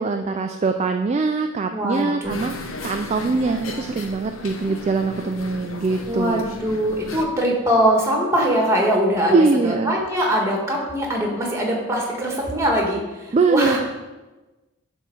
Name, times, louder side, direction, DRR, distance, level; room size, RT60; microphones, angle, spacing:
voice 1, 0.0-2.5 2.8-6.4 9.3-10.0 13.3-13.8, right 3 dB, 30° right, 5 dB, 0.3 m, -22 dB
voice 2, 1.7-2.5 6.1-9.4 9.6-13.8, equal, 15° right, -1 dB, 1.5 m, -22 dB
sound 1, 2.2-7.2, left 2 dB, 75° left, 0.8 m, -35 dB
9.8 x 3.6 x 5.8 m, 1.2 s
head